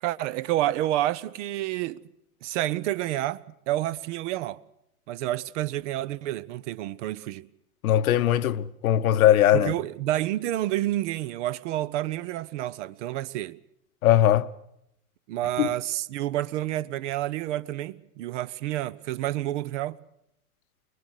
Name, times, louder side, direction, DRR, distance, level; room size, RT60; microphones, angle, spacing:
voice 1, 0.0-2.0 2.4-4.6 5.1-7.5 9.5-13.6 15.3-20.0, right 14 dB, 50° right, 0.8 m, -29 dB
voice 2, 7.8-9.7 14.0-14.5 15.6-15.7, left 12 dB, 65° left, 1.0 m, -20 dB
24.0 x 21.0 x 6.5 m
hypercardioid pair, 115°, 45 cm